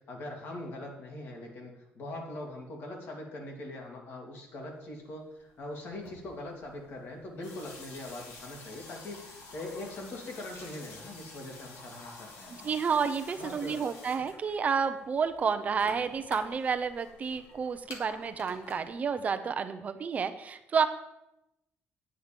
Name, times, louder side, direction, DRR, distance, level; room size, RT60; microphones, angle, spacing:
voice 1, 0.1-12.7 13.4-13.8 15.9-16.0, left 1 dB, 55° left, 1 dB, 2.5 m, -42 dB
sound 1, 5.0-5.1 5.3-19.0, left 3 dB, 75° left, 2.0 m, -50 dB
voice 2, 12.6-20.9, right 6 dB, 35° right, 9 dB, 0.6 m, -30 dB
8.9 x 8.8 x 5.1 m, 0.88 s
cardioid pair, 150°, 4 cm